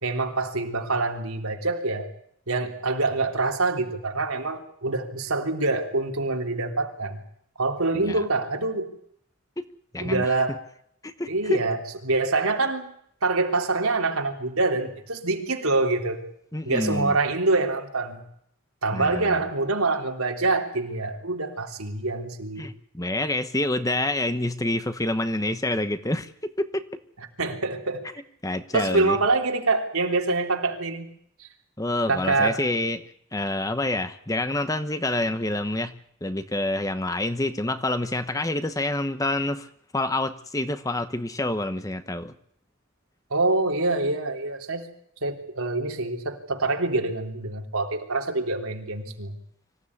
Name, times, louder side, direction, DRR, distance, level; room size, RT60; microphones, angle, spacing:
voice 1, 0.0-2.1 2.5-7.2 7.6-8.9 10.0-10.6 11.3-12.9 13.2-16.2 16.6-18.2 18.8-22.7 27.4-28.1 28.7-31.1 31.4-31.5 32.1-32.6 43.3-44.9 45.2-49.3, right 3 dB, 80° right, 3 dB, 3.5 m, -25 dB
voice 2, 9.9-10.3 11.0-11.6 16.5-17.2 18.9-19.4 22.6-26.8 28.4-29.2 31.8-33.0 33.3-39.7 39.9-42.3, left 1 dB, 15° left, 10 dB, 1.0 m, -27 dB
25.0 x 16.0 x 9.8 m, 0.68 s
head